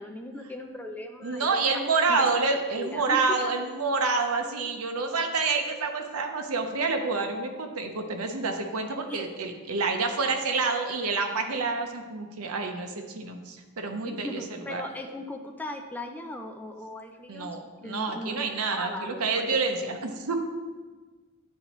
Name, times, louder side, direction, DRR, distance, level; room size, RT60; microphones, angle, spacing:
voice 1, 0.0-1.6 2.1-2.3 2.8-3.5 9.1-9.3 14.0-17.6 17.8-19.6, left 1 dB, 10° left, 3 dB, 0.4 m, -38 dB
voice 2, 1.2-14.3 14.7-14.8 17.3-20.4, right 4 dB, 80° right, 4 dB, 0.7 m, -28 dB
9.3 x 4.0 x 3.0 m, 1.3 s
head